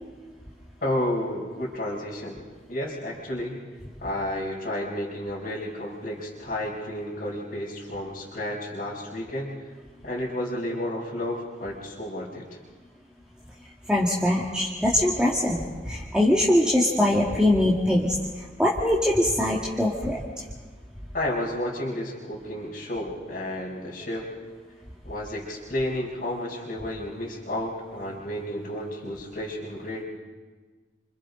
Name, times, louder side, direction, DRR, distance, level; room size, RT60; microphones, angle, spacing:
voice 1, 0.8-2.4 2.7-3.6 4.0-9.5 10.0-12.4 21.1-24.3 25.0-30.0, left 1 dB, 50° left, -7 dB, 4.1 m, -31 dB
voice 2, 13.9-20.2, left 1 dB, 5° right, -5 dB, 2.0 m, -22 dB
29.5 x 26.0 x 3.9 m, 1.4 s
head